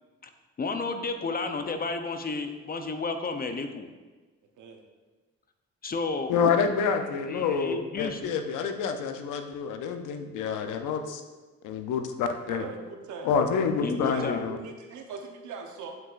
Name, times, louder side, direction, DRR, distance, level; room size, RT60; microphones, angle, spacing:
voice 1, 0.6-3.9 5.8-6.3 7.3-8.3 13.8-14.4, left 3 dB, 30° left, 7 dB, 0.6 m, -32 dB
voice 2, 6.3-11.2 11.6-12.7 13.2-14.6, left 6 dB, 85° left, 7 dB, 0.7 m, -28 dB
voice 3, 12.5-13.4 13.8-15.9, right 5 dB, 75° right, 3 dB, 1.0 m, -41 dB
7.8 x 5.6 x 2.5 m, 1.3 s
cardioid pair, 90°, 30 cm